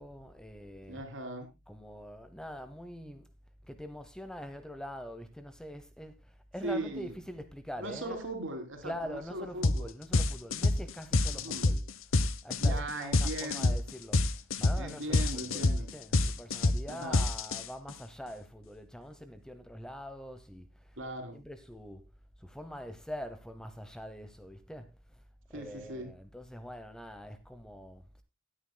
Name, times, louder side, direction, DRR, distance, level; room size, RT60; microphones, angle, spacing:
voice 1, 0.0-1.0 1.7-3.3 3.6-8.2 8.8-11.9 12.4-14.2 14.6-21.0 21.3-22.1 22.4-25.2 25.5-28.2, equal, 5° left, 0.8 m, -44 dB
voice 2, 0.9-1.5 6.6-7.1 7.8-9.9 11.3-11.7 12.6-13.8 14.7-15.9 16.9-17.2 21.0-21.4 25.5-26.1, right 1 dB, 60° right, 3.3 m, -39 dB
sound 1, 9.6-9.8 10.1-17.9, left 2 dB, 65° left, 0.8 m, -27 dB
18.0 x 9.6 x 2.2 m
head